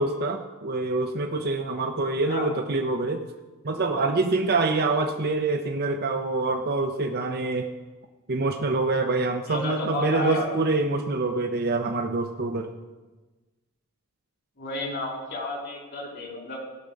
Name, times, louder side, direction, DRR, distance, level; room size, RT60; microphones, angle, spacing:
voice 1, 0.0-3.2 3.6-7.7 8.3-12.7, right 3 dB, 45° right, 5 dB, 0.7 m, -26 dB
voice 2, 9.5-10.6 14.6-16.6, left 2 dB, 50° left, -1 dB, 3.1 m, -31 dB
17.0 x 6.1 x 5.2 m, 1.2 s
head